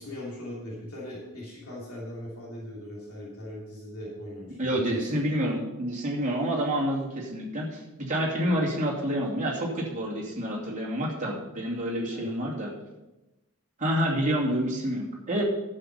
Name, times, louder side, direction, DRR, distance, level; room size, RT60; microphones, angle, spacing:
voice 1, 0.0-5.1 12.0-12.3, left 1 dB, 65° left, -6 dB, 3.1 m, -39 dB
voice 2, 4.6-12.7 13.8-15.4, equal, 35° right, -3 dB, 2.6 m, -28 dB
11.0 x 7.1 x 5.5 m, 1.0 s
head